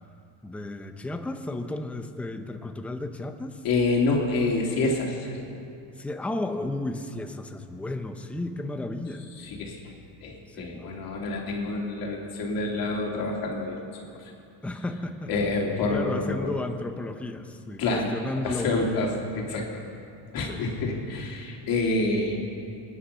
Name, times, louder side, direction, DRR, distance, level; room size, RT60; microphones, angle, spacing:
voice 1, 0.4-3.6 6.0-9.3 10.5-10.9 14.6-15.3 15.9-19.1 20.4-20.6, left 2 dB, 5° left, 6 dB, 0.6 m, -33 dB
voice 2, 3.6-5.5 9.4-9.8 10.2-14.2 15.3-16.5 17.8-18.2 18.4-19.1 19.4-19.7 20.3-22.4, left 3 dB, 50° left, -1 dB, 3.1 m, -27 dB
25.0 x 10.0 x 5.7 m, 2.6 s
cardioid pair, 155°, 44 cm